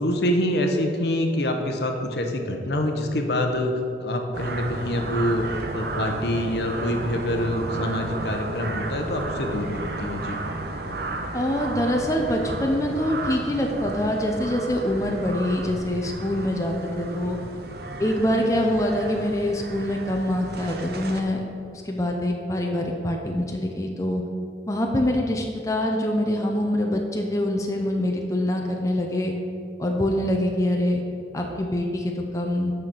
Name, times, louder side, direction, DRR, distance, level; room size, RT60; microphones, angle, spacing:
voice 1, 0.0-3.7 4.0-5.4 5.7-10.4, left 1 dB, 65° left, 4 dB, 0.8 m, -26 dB
sound 1, 4.3-21.2, right 2 dB, 60° right, 0.7 m, -33 dB
voice 2, 11.3-17.4 18.0-21.4 21.7-24.2 24.7-29.3 29.8-31.0 31.3-32.7, left 1 dB, 20° left, 1 dB, 0.6 m, -25 dB
6.2 x 5.8 x 6.9 m, 2.5 s
head